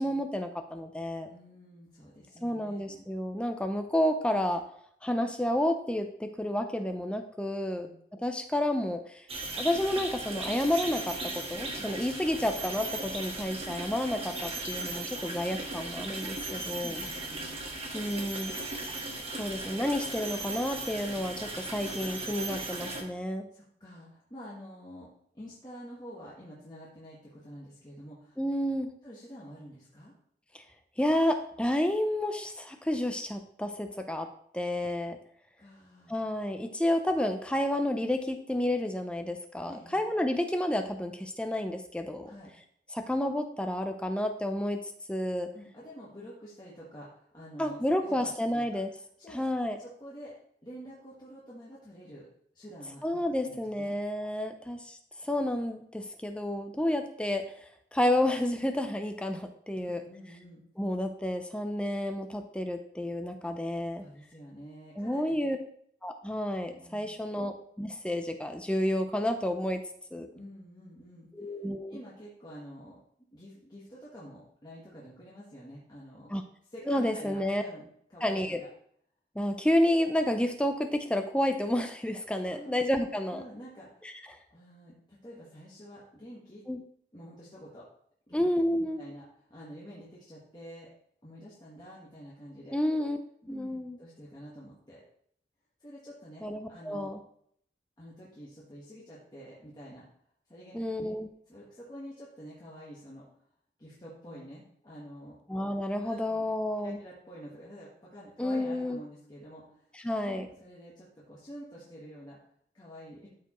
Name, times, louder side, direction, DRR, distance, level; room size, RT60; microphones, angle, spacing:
voice 1, 0.0-1.3 2.4-4.6 5.0-9.3 9.6-17.0 17.9-19.0 19.4-23.5 28.4-28.9 30.5-30.6 31.0-34.3 34.5-35.2 36.1-42.3 42.9-45.5 47.6-48.9 49.3-49.8 53.0-57.4 57.9-60.0 60.8-64.0 65.0-65.6 66.0-69.8 70.1-70.3 71.3-72.0 76.3-76.4 76.9-77.6 78.2-78.6 79.4-83.4 84.0-84.4 86.7-86.8 88.3-89.0 92.7-93.2 93.5-94.0 96.4-97.2 100.7-101.3 105.5-107.0 108.4-109.0 110.0-110.5, left 1 dB, 5° left, 6 dB, 0.4 m, -30 dB
voice 2, 1.3-3.0 7.8-8.0 11.8-11.9 16.8-17.6 23.5-25.1 25.3-28.4 29.0-30.1 35.6-36.1 39.7-40.0 42.3-42.5 45.5-48.6 49.2-49.4 49.8-50.4 50.6-52.3 52.5-53.0 53.4-53.9 59.7-60.6 64.0-65.5 66.7-67.1 70.3-71.5 71.9-73.0 73.3-76.3 76.7-78.7 82.5-82.8 83.3-84.1 84.5-86.6 87.1-87.9 88.3-89.2 89.5-90.9 91.2-92.8 93.4-95.0 95.8-97.1 98.0-100.0 100.5-101.1 101.5-103.3 103.8-105.4 106.0-106.4 106.8-109.9 110.2-112.4 112.7-113.3, equal, 25° left, -7 dB, 1.4 m, -48 dB
sound 1, 9.3-23.0, right 2 dB, 35° right, 1.3 m, -37 dB
12.5 x 4.5 x 3.0 m, 0.66 s
head